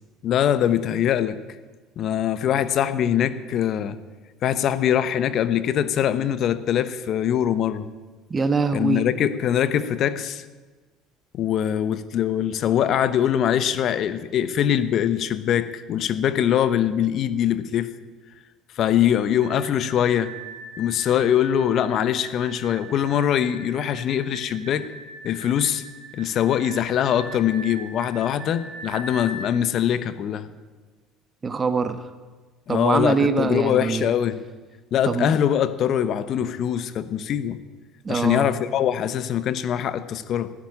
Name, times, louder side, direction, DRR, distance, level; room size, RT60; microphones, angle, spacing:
voice 1, 0.2-1.4 2.0-4.0 4.4-7.9 8.7-10.4 11.3-17.9 18.8-20.3 20.8-24.9 25.2-25.8 26.1-30.5 32.7-34.4 34.9-37.6 38.1-40.5, left 10 dB, 55° left, 13 dB, 1.0 m, -23 dB
voice 2, 8.3-9.0 31.4-32.1 32.7-34.1 35.0-35.4 38.0-38.5, right 4 dB, 30° right, 10 dB, 1.1 m, -23 dB
sound 1, 19.3-29.5, right 1 dB, 60° right, 1.7 m, -41 dB
13.5 x 10.0 x 8.8 m, 1.3 s
hypercardioid pair, 75°, 0 cm